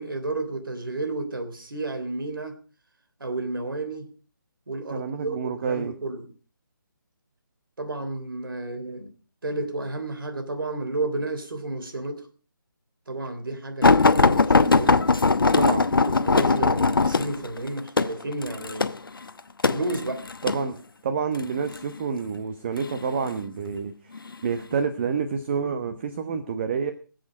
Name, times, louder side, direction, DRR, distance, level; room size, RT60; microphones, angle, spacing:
voice 1, 0.0-2.6 3.2-4.1 4.7-6.3 7.8-9.1 9.4-12.3 13.1-15.1 16.1-18.9 19.7-20.2, right 2 dB, 80° right, 3.3 m, -31 dB
voice 2, 4.9-5.9 15.5-15.9 20.4-20.8 21.0-23.9 24.4-26.9, right 6 dB, 30° right, 1.1 m, -28 dB
sound 1, 13.8-20.6 21.4-21.8 22.8-23.4 24.2-24.3 24.7-24.8, left 3 dB, 85° left, 0.9 m, -20 dB
23.0 x 7.8 x 5.0 m
figure-of-eight pair, 160°, 11 cm